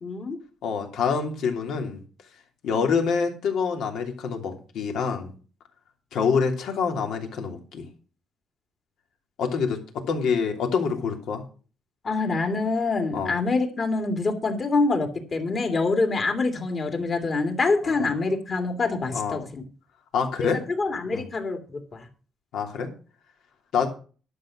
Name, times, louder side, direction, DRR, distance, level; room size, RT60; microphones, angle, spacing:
voice 1, 0.0-0.4 12.0-19.6 20.4-20.5 20.8-22.1, left 3 dB, 35° left, 5 dB, 2.4 m, -25 dB
voice 2, 0.6-2.0 2.6-5.3 6.1-7.9 9.4-11.4 13.1-13.4 17.8-18.1 19.1-19.4 20.1-20.6 21.1-21.3 22.5-22.9 23.7-23.9, left 6 dB, 70° left, 4 dB, 2.8 m, -26 dB
11.5 x 6.8 x 6.2 m, 0.37 s
cardioid pair, 140°, 0 cm